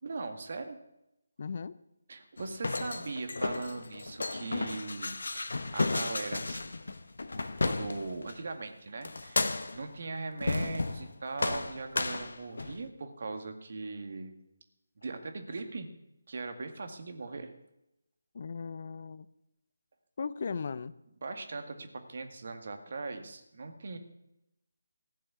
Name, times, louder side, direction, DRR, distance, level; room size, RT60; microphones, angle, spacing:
voice 1, 0.0-0.8 2.1-6.7 7.6-14.3 15.0-15.9 16.3-17.5 21.2-24.0, right 3 dB, 55° right, 6 dB, 2.0 m, -40 dB
voice 2, 1.4-1.7 18.3-19.3 20.2-20.9, left 5 dB, 50° left, 17 dB, 0.6 m, -37 dB
sound 1, 2.4-8.4 9.0-9.9 10.4-11.1 11.4-12.8, left 3 dB, 65° left, 1.2 m, -33 dB
15.5 x 7.6 x 8.4 m, 0.87 s
figure-of-eight pair, 155°, 0 cm